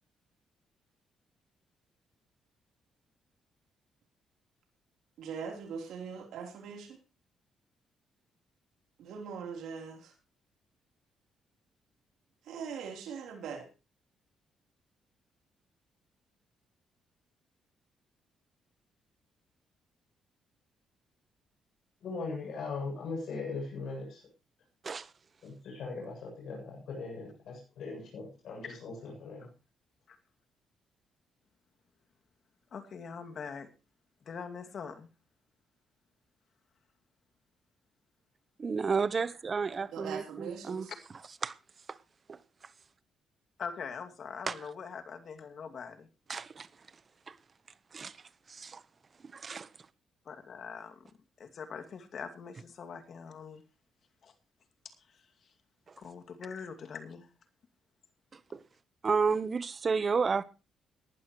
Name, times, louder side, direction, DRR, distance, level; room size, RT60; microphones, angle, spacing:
voice 1, 5.2-7.0 9.0-10.1 12.4-13.7 39.9-40.9, right 6 dB, 80° right, 2 dB, 3.7 m, -41 dB
voice 2, 22.0-24.2 25.4-29.5, left 4 dB, 75° left, 0 dB, 8.0 m, -39 dB
voice 3, 32.7-33.7 34.3-35.1 43.6-46.1 50.3-51.1 51.4-53.6 54.2-54.3 56.0-57.3, left 6 dB, 55° left, 7 dB, 2.4 m, -43 dB
voice 4, 38.6-40.9 41.4-41.5 42.3-42.4 44.5-44.6 46.3-46.7 47.3-47.4 47.9-48.1 48.5-48.8 49.3-49.7 58.5-58.6 59.0-60.4, right 5 dB, 40° right, 17 dB, 1.0 m, -31 dB
19.0 x 12.0 x 3.1 m, 0.30 s
cardioid pair, 80°, 0 cm